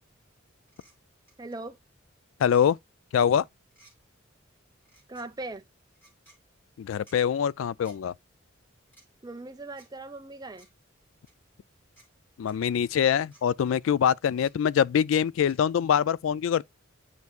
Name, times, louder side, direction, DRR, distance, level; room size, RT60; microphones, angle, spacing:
sound 1, 0.7-0.9 1.3-1.6 2.4-2.7 3.7-3.9 4.8-5.3 5.9-6.4 7.1-7.2 7.8-8.0 8.9-9.1 9.8-9.9 10.6-10.7 11.3-11.4 12.0-12.1 12.5-12.6 13.3-13.4 14.4-14.5 15.4-15.6, right 1 dB, 10° left, 3.3 m, -58 dB
voice 1, 1.4-1.8 5.1-5.6 9.2-10.7, right 2 dB, 20° right, 0.6 m, -39 dB
voice 2, 2.4-2.8 3.1-3.4 6.8-8.1 12.4-16.6, left 8 dB, 70° left, 0.3 m, -24 dB
9.5 x 4.6 x 2.4 m
head